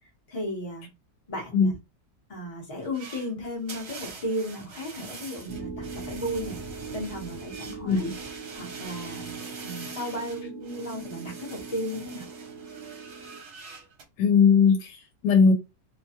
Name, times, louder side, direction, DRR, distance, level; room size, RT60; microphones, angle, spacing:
voice 1, 0.3-0.9 1.3-1.8 2.3-6.6 6.9-8.1 8.5-12.2, equal, 25° left, 0.8 m, -34 dB
sound 1, 2.8-14.0, right 4 dB, 65° right, 1.3 m, -44 dB
sound 2, 5.5-13.4, right 4 dB, 45° right, 0.7 m, -40 dB
voice 2, 7.8-8.1 14.2-15.5, left 5 dB, 80° left, 1.2 m, -20 dB
3.0 x 2.2 x 2.8 m
omnidirectional pair, 1.9 m